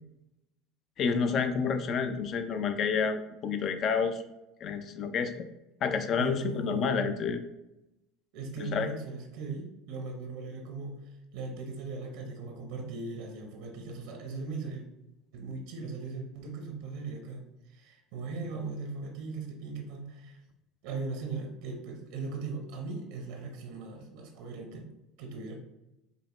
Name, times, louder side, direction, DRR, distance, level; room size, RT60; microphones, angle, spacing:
voice 1, 1.0-4.2 4.6-5.5 5.8-7.4 8.6-8.9, left 5 dB, 50° left, 9 dB, 0.4 m, -29 dB
voice 2, 6.2-7.1 8.3-11.0 11.3-14.8 15.3-17.4 17.7-20.4 20.8-24.9 25.2-25.5, right 3 dB, 75° right, 3 dB, 0.7 m, -38 dB
5.3 x 2.1 x 3.0 m, 0.91 s
supercardioid pair, 95°, 0 cm